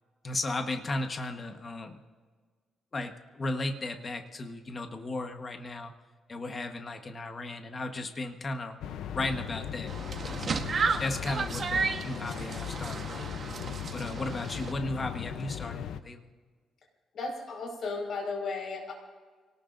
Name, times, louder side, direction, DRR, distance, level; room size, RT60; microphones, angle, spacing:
voice 1, 0.2-2.0 2.9-5.9 6.3-8.8 9.1-9.9 10.3-10.7 11.0-13.4 13.9-16.3, left 2 dB, 30° left, 5 dB, 1.3 m, -35 dB
sound 1, 8.8-16.0, left 9 dB, 90° left, 0.7 m, -38 dB
sound 2, 9.9-14.7, right 5 dB, 40° right, 1.2 m, -33 dB
voice 2, 17.1-18.9, left 3 dB, 55° left, 1 dB, 5.1 m, -34 dB
30.0 x 18.5 x 2.6 m, 1.5 s
cardioid pair, 135°, 0 cm